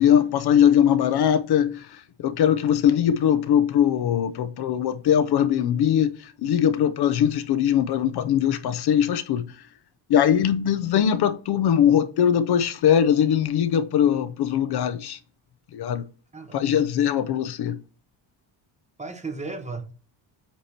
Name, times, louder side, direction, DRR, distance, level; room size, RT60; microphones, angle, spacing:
voice 1, 0.0-9.6 10.1-15.2 15.7-16.0 16.5-17.8, left 9 dB, 55° left, 0.6 m, -21 dB
voice 2, 16.3-16.9 19.0-19.9, right 3 dB, 15° right, 0.8 m, -35 dB
8.4 x 2.9 x 4.2 m
cardioid pair, 150°, 47 cm